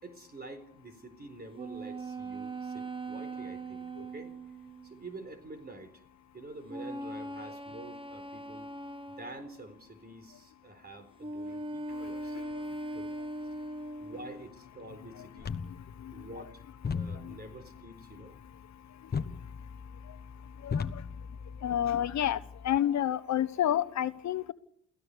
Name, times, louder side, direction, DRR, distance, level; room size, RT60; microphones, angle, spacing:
voice 1, 0.0-4.3 4.8-6.0 6.3-8.7 9.2-12.4 12.9-13.1 14.0-15.6 16.1-18.4, right 2 dB, 30° right, 8 dB, 4.3 m, -48 dB
sound 1, 1.5-5.1 6.7-9.6 11.2-14.5, right 2 dB, 15° right, 1.2 m, -40 dB
voice 2, 12.0-12.5 15.2-15.3 16.0-16.5 17.2-17.4 20.6-21.0 21.6-24.5, left 11 dB, 65° left, 13 dB, 1.2 m, -30 dB
sound 2, 15.4-22.8, left 6 dB, 30° left, 1.3 m, -39 dB
29.0 x 16.5 x 6.9 m, 0.69 s
cardioid pair, 90°, 30 cm